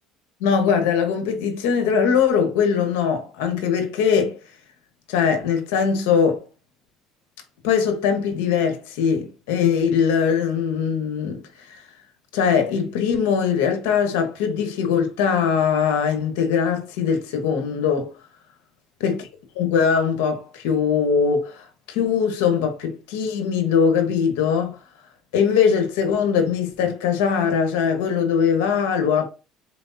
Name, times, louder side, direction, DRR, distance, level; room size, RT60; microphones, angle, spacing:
voice 1, 0.4-4.4 5.1-6.4 7.6-11.4 11.7-11.8 12.3-18.1 19.0-19.3 19.6-24.8 25.3-29.2, left 6 dB, 90° left, 1.0 m, -21 dB
4.2 x 3.4 x 2.7 m
supercardioid pair, 105°, 0 cm